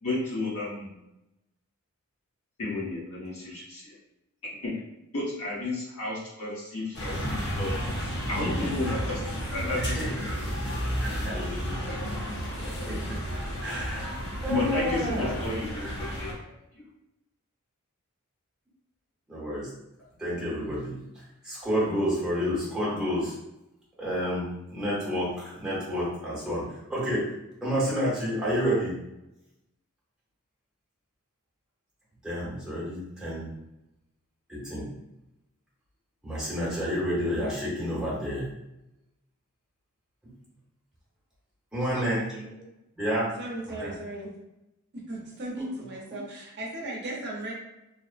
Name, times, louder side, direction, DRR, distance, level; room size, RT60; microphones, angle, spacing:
voice 1, 0.0-0.9 2.6-3.9 4.6-4.7 5.1-7.7 8.3-9.2 9.5-10.1 14.5-16.8, left 2 dB, 65° left, -6 dB, 1.0 m, -32 dB
sound 1, 6.9-16.3, equal, 50° left, 0.7 m, -32 dB
voice 2, 9.7-13.2 13.6-14.1 14.4-15.4 15.7-16.0 19.3-19.7 20.2-23.3 24.0-27.3 27.6-28.9 32.2-33.5 34.5-34.9 36.2-38.5 41.7-42.2 43.0-43.3 43.8-43.9 45.6-45.7, equal, 5° right, -8 dB, 0.9 m, -30 dB
voice 3, 41.9-42.4 43.4-44.3 44.9-47.5, right 1 dB, 50° right, -2 dB, 0.6 m, -36 dB
2.9 x 2.0 x 2.4 m, 0.90 s
head